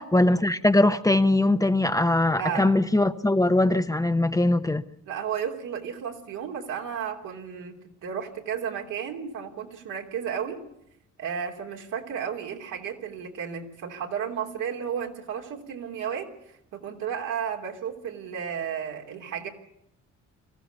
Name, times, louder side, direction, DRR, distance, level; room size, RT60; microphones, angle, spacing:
voice 1, 0.0-4.8, left 2 dB, 10° left, 0.8 m, -21 dB
voice 2, 2.3-2.8 5.1-10.6 11.2-16.3 16.7-19.5, right 8 dB, 85° right, 3.3 m, -33 dB
23.5 x 15.0 x 8.2 m
cardioid pair, 90°, 30 cm